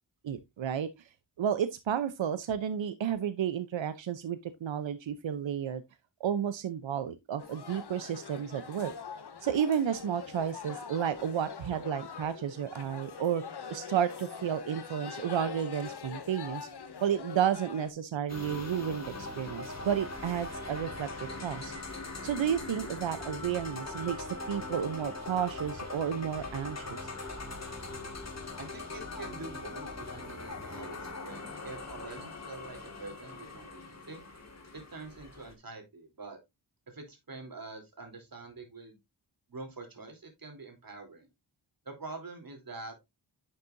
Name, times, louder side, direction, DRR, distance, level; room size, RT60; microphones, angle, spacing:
voice 1, 0.2-0.9 1.4-5.8 6.2-8.9 9.4-13.4 13.7-16.7 17.0-21.7 22.2-27.1, right 9 dB, 85° right, 0.8 m, -32 dB
sound 1, 7.4-17.9, left 6 dB, 60° left, 1.2 m, -44 dB
sound 2, 18.3-35.5, left 2 dB, 35° left, 2.0 m, -41 dB
voice 2, 28.6-34.2 34.7-36.4 36.9-39.0 39.5-41.3 41.8-42.9, right 3 dB, 50° right, 3.2 m, -45 dB
10.0 x 6.8 x 2.6 m
wide cardioid pair, 125°, 44 cm